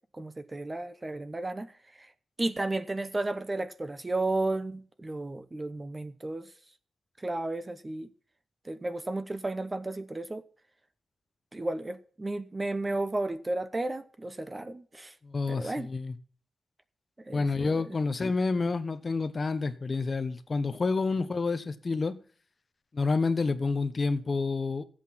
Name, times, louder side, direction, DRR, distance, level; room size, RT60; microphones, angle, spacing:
voice 1, 0.1-1.7 2.0-2.1 2.4-6.5 7.2-8.1 8.6-10.4 11.5-15.1 15.5-15.9 17.2-18.0, right 2 dB, 20° right, 0.8 m, -33 dB
voice 2, 15.2-16.1 17.3-22.2 22.9-24.8, left 4 dB, 35° left, 1.1 m, -29 dB
14.5 x 8.3 x 5.8 m
wide cardioid pair, 130°, 0 cm